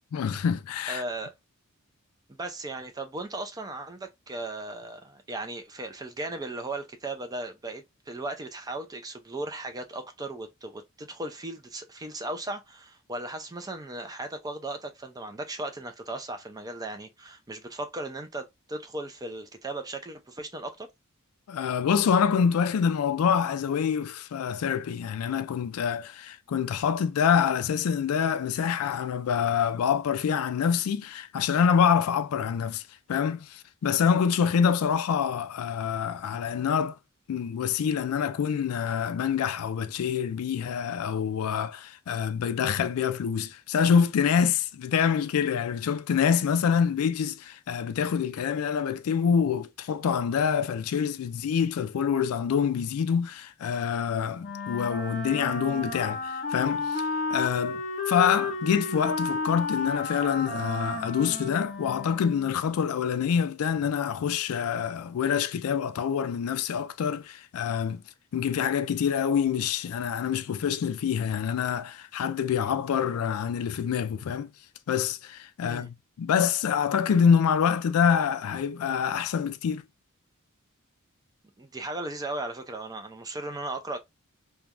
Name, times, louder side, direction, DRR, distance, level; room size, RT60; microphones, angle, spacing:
voice 1, 0.1-1.0 21.5-32.8 33.1-37.0 37.3-57.0 57.3-68.0 68.3-74.5 74.9-79.8, left 7 dB, 80° left, 0.3 m, -26 dB
voice 2, 0.9-1.3 2.3-20.9 75.6-75.9 81.6-84.0, right 2 dB, 15° right, 0.5 m, -37 dB
Wind instrument woodwind instrument, 54.4-62.7, left 3 dB, 40° left, 0.7 m, -32 dB
3.2 x 2.2 x 2.4 m
head